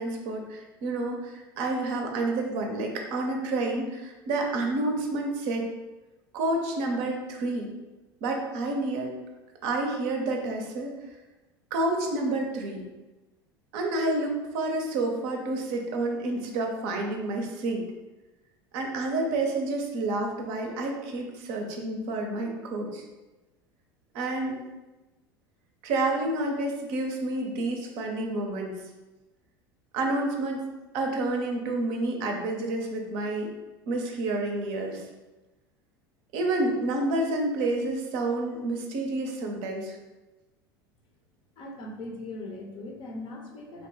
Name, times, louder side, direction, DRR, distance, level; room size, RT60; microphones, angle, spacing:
voice 1, 0.0-5.7 6.3-7.7 8.2-9.2 9.6-10.9 11.7-12.9 13.7-17.8 18.7-23.0 24.1-24.6 25.8-28.8 29.9-30.7 30.9-33.5 33.9-35.0 36.3-40.0, right 2 dB, 55° right, 2 dB, 0.5 m, -29 dB
voice 2, 41.6-43.9, left 2 dB, 40° left, 0 dB, 0.6 m, -39 dB
2.8 x 2.1 x 3.1 m, 1.1 s
figure-of-eight pair, 75°, 12 cm